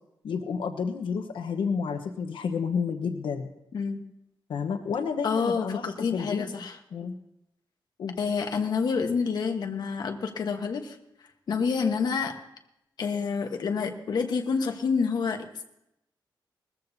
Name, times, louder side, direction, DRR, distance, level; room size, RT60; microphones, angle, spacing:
voice 1, 0.2-3.5 4.5-6.4 6.9-7.1 8.0-8.1, left 6 dB, 90° left, 6 dB, 1.1 m, -30 dB
voice 2, 5.2-6.8 8.2-11.0 11.5-12.3 13.0-15.6, left 5 dB, 55° left, 4 dB, 1.2 m, -28 dB
20.0 x 14.0 x 2.8 m, 0.84 s
wide cardioid pair, 160°, 8 cm